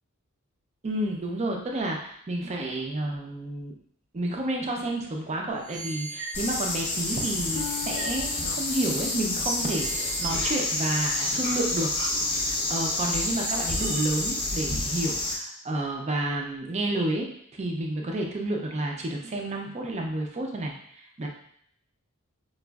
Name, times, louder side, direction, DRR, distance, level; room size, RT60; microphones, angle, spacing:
voice 1, 0.8-3.7 4.1-11.9 12.2-17.3 17.5-21.3, right 1 dB, 30° right, 1 dB, 0.5 m, -30 dB
sound 1, 5.5-7.4 8.0-8.2 9.0-9.1 9.4-11.6 12.0-12.1 13.0-13.1 13.4-14.0, right 3 dB, 80° right, 0.7 m, -38 dB
sound 2, 6.3-15.3, left 2 dB, 20° left, 0.6 m, -29 dB
Harp, 7.5-11.3 11.8-12.2 12.9-13.0, left 9 dB, 65° left, 0.4 m, -44 dB
4.9 x 2.4 x 2.3 m, 0.67 s
head